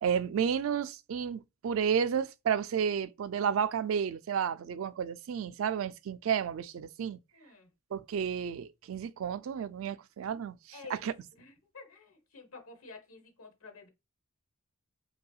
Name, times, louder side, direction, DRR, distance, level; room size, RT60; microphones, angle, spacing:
voice 1, 0.0-7.2 7.9-10.6 11.0-11.1, right 7 dB, 65° right, 0.3 m, -31 dB
voice 2, 4.5-4.9 7.3-7.7 10.7-13.9, left 4 dB, 85° left, 1.1 m, -51 dB
5.4 x 2.3 x 2.3 m
head